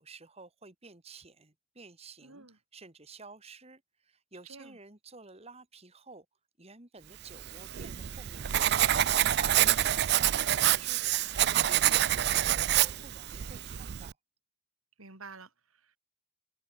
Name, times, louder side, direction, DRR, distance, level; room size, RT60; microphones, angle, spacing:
voice 1, 0.0-6.3 6.6-14.2, right 3 dB, 30° right, 2.0 m, -52 dB
voice 2, 2.2-2.6 4.5-4.8 15.0-16.0, right 3 dB, 90° right, 4.2 m, -50 dB
Writing, 7.4-14.1, right 12 dB, 50° right, 0.4 m, -27 dB
head